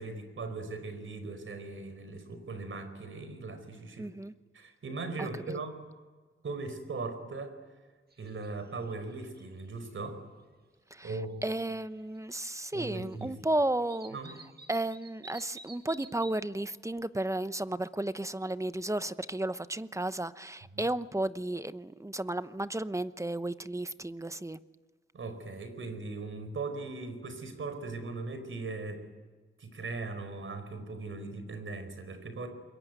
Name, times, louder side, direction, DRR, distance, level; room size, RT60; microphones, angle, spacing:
voice 1, 0.0-4.1 4.5-5.7 6.4-7.6 8.2-10.2 11.0-11.4 12.7-13.4 14.1-14.3 20.7-20.9 25.1-29.0 29.6-32.5, right 3 dB, 75° right, 9 dB, 4.8 m, -39 dB
voice 2, 4.0-4.3 5.2-5.6 10.9-11.1 11.4-14.2 14.7-24.6, right 1 dB, 15° right, 13 dB, 0.9 m, -33 dB
sound 1, 8.1-8.5 8.8-10.0 11.5-11.6 12.1-13.1 13.4-13.5 13.9-16.3, right 3 dB, 50° right, 1.8 m, -51 dB
26.5 x 22.5 x 9.5 m, 1.4 s
wide cardioid pair, 80°, 21 cm